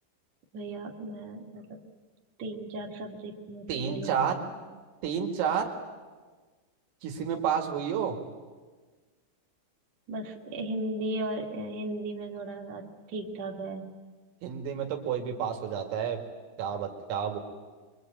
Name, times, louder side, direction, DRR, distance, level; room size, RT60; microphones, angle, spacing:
voice 1, 0.5-1.8 2.4-4.5 10.1-13.9, right 1 dB, 45° right, 1 dB, 2.6 m, -36 dB
voice 2, 3.7-4.4 5.0-5.7 7.0-8.2 14.4-16.2 16.6-17.4, right 7 dB, 80° right, 3 dB, 4.9 m, -30 dB
25.5 x 24.0 x 8.9 m, 1.4 s
omnidirectional pair, 5.9 m